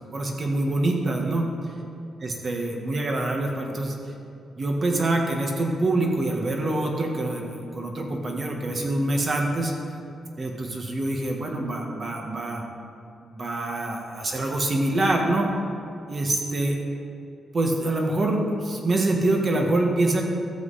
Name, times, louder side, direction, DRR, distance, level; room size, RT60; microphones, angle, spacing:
voice 1, 0.1-1.5 2.2-3.9 4.6-9.7 10.4-12.6 13.2-15.5 16.1-16.8 17.5-20.3, right 2 dB, 40° right, 1 dB, 1.6 m, -25 dB
13.5 x 7.7 x 4.2 m, 2.6 s
cardioid pair, 110°, 0 cm